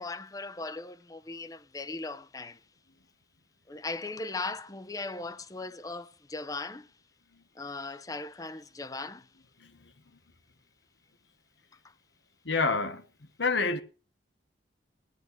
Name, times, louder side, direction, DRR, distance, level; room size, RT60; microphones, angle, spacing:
voice 1, 0.0-2.6 3.7-6.9 7.6-9.2, left 3 dB, 20° left, 0.6 m, -38 dB
voice 2, 12.4-13.0 13.4-13.8, left 3 dB, 80° left, 1.3 m, -27 dB
18.0 x 11.0 x 4.1 m
head